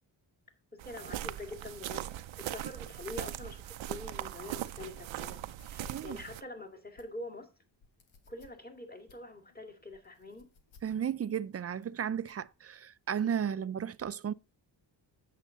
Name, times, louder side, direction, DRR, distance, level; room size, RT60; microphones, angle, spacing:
voice 1, 0.7-7.5 8.3-10.5 13.4-13.7, left 2 dB, 20° left, 2.3 m, -45 dB
sound 1, 0.8-6.4, right 13 dB, 85° right, 0.6 m, -40 dB
sound 2, 5.3-12.5, left 5 dB, 80° left, 1.5 m, -61 dB
voice 2, 10.8-14.3, right 8 dB, 35° right, 0.4 m, -34 dB
8.4 x 6.6 x 3.8 m
cardioid pair, 75°, 45 cm